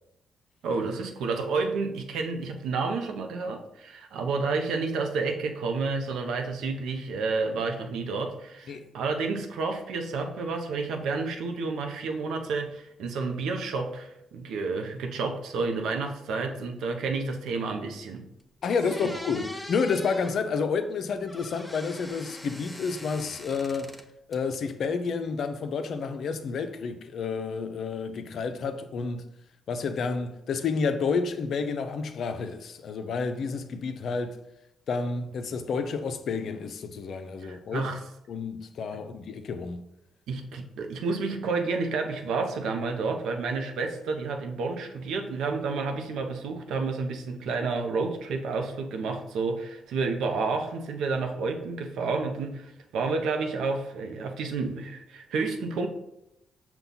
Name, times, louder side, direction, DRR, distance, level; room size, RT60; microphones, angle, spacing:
voice 1, 0.6-18.3 19.0-19.1 37.4-38.0 40.3-55.9, right 4 dB, 75° right, 0.6 m, -30 dB
sound 1, 18.1-18.2 18.6-20.4 21.3-24.0 24.3-25.1, left 1 dB, 10° left, 0.6 m, -43 dB
voice 2, 18.6-23.9 24.3-29.2 29.7-34.4 34.9-37.9 38.3-39.8, left 5 dB, 65° left, 0.4 m, -30 dB
5.5 x 2.3 x 3.9 m
supercardioid pair, 50°, 0 cm